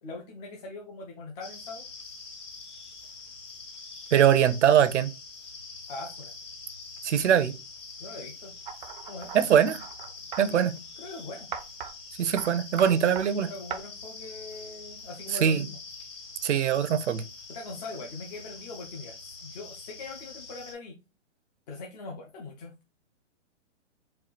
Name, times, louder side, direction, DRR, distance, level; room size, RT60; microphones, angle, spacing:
voice 1, 0.0-1.9 5.9-6.3 8.0-8.5 9.1-9.6 10.5-11.5 12.8-13.0 13.5-15.8 17.5-21.0 21.7-22.7, left 3 dB, 35° left, 0.7 m, -41 dB
sound 1, 1.4-20.7, left 4 dB, 80° left, 2.6 m, -45 dB
voice 2, 4.1-5.1 7.0-7.5 9.3-9.8 10.4-10.8 12.2-13.5 15.4-15.6 16.4-17.2, right 9 dB, 75° right, 0.7 m, -22 dB
sound 2, 8.7-10.5 11.5-11.9 12.4-12.5 12.8-13.3 13.7-13.8, right 8 dB, 40° right, 0.5 m, -38 dB
4.4 x 2.4 x 4.0 m
hypercardioid pair, 155°, 36 cm